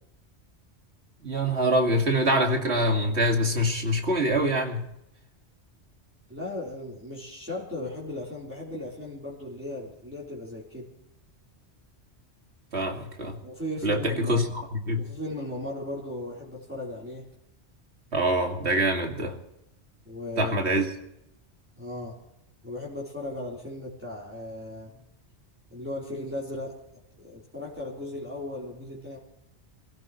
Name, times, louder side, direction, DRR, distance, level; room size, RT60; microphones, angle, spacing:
voice 1, 1.2-4.9 12.7-13.4 13.8-15.1 18.1-19.3 20.4-20.9, right 1 dB, 70° right, 2.6 m, -25 dB
voice 2, 6.3-10.9 13.4-14.4 15.0-17.3 20.1-20.7 21.8-22.1 22.6-24.9 25.7-26.8 27.2-29.2, left 1 dB, 10° right, 3.8 m, -36 dB
28.0 x 16.5 x 3.2 m
omnidirectional pair, 1.2 m